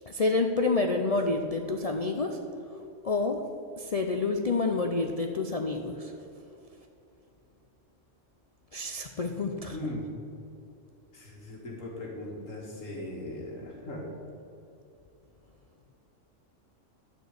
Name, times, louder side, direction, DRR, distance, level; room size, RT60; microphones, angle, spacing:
voice 1, 0.1-2.4 3.0-3.4 3.8-6.1 8.7-9.8, left 3 dB, 50° left, 3 dB, 0.4 m, -28 dB
voice 2, 9.7-10.1 11.1-14.0, left 1 dB, 75° left, -3 dB, 2.0 m, -39 dB
12.0 x 4.5 x 8.0 m, 2.7 s
omnidirectional pair, 1.3 m